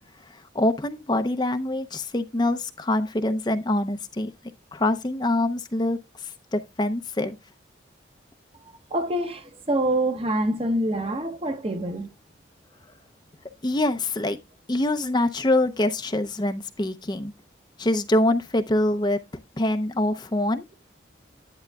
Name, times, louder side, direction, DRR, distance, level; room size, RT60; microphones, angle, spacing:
voice 1, 0.3-4.3 4.7-7.4 13.6-14.4 14.7-17.3 17.8-19.2 19.6-20.6, left 1 dB, 25° left, 0.6 m, -25 dB
voice 2, 8.9-12.1, right 1 dB, 30° right, 0.9 m, -26 dB
10.5 x 8.7 x 2.3 m
head